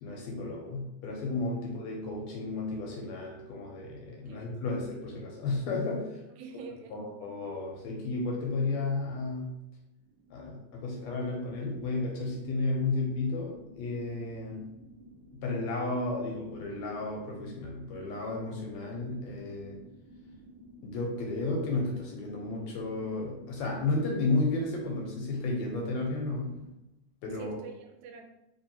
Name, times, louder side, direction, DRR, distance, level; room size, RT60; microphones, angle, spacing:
voice 1, 0.0-6.2 6.9-9.5 10.3-14.7 15.3-19.8 20.8-26.6 27.2-27.6, left 2 dB, 75° left, 0 dB, 1.7 m, -33 dB
voice 2, 4.2-4.5 6.4-7.1 27.4-28.2, right 4 dB, 80° right, 4 dB, 1.9 m, -45 dB
sound 1, 10.0-26.7, right 1 dB, 60° right, 1.1 m, -54 dB
4.4 x 3.1 x 2.7 m, 0.87 s
omnidirectional pair, 3.6 m